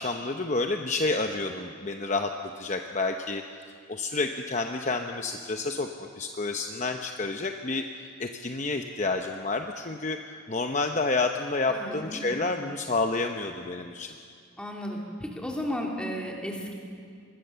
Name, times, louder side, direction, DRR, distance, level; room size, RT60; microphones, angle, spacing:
voice 1, 0.0-3.4 3.9-10.2 10.5-14.1, left 3 dB, 35° left, 4 dB, 0.8 m, -29 dB
voice 2, 11.7-12.2 14.6-16.7, equal, 5° left, -1 dB, 3.0 m, -34 dB
25.0 x 20.5 x 6.9 m, 2.2 s
head